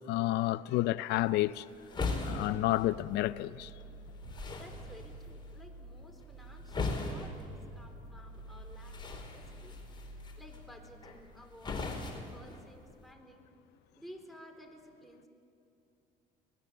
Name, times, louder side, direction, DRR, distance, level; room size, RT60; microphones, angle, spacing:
voice 1, 0.1-1.7 2.2-3.7, left 16 dB, 80° left, 0.5 m, -30 dB
sound 1, 1.1-13.1, left 3 dB, 25° left, 4.6 m, -41 dB
sound 2, 1.9-11.5, right 1 dB, 20° right, 3.3 m, -51 dB
sound 3, 4.2-5.7 7.2-8.7, right 3 dB, 65° right, 3.9 m, -53 dB
voice 2, 4.5-9.8 10.1-13.5 14.0-15.3, equal, ahead, 4.1 m, -54 dB
25.5 x 19.5 x 8.2 m
cardioid pair, 95°, 17 cm